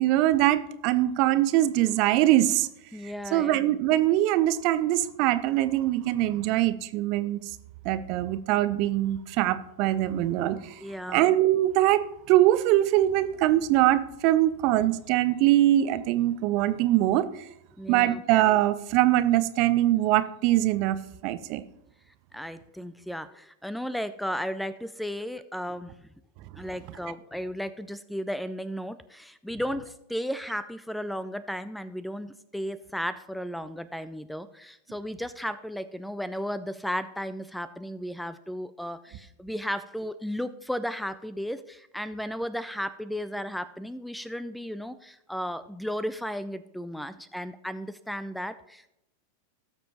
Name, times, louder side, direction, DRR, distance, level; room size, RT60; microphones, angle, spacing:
voice 1, 0.0-2.7 3.3-7.4 7.8-10.7 11.1-12.0 12.3-17.3 17.9-21.0 21.2-21.6, right 14 dB, 45° right, 14 dB, 0.6 m, -23 dB
voice 2, 2.9-3.6 10.8-11.2 17.7-18.2 22.3-26.1 26.6-48.9, equal, ahead, 15 dB, 0.4 m, -34 dB
18.0 x 7.0 x 3.0 m, 0.83 s
figure-of-eight pair, 90°, 0 cm